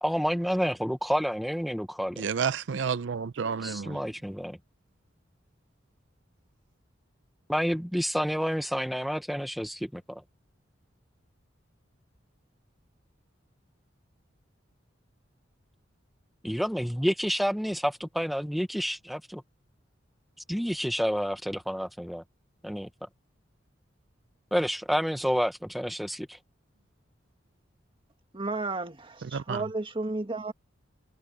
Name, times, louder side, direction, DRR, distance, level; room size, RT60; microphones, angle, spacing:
voice 1, 0.0-2.2 3.9-4.6 7.5-10.2 16.4-19.4 20.5-22.2 22.6-22.9 24.5-26.4, equal, ahead, 0.7 m, -29 dB
voice 2, 2.2-3.8 29.2-29.6, right 6 dB, 70° right, 0.5 m, -30 dB
voice 3, 28.3-29.0 29.3-30.5, right 2 dB, 30° right, 1.9 m, -32 dB
head